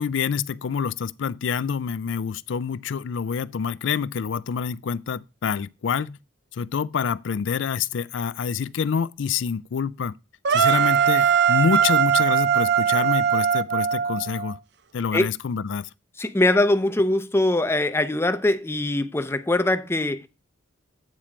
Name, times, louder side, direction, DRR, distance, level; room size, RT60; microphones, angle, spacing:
voice 1, 0.0-6.2 6.5-10.1 10.5-14.6 14.9-15.9, left 6 dB, 65° left, 0.4 m, -27 dB
sound 1, 10.4-14.5, right 8 dB, 60° right, 0.5 m, -20 dB
voice 2, 16.2-20.3, left 1 dB, 15° left, 0.5 m, -22 dB
8.9 x 4.4 x 4.9 m
head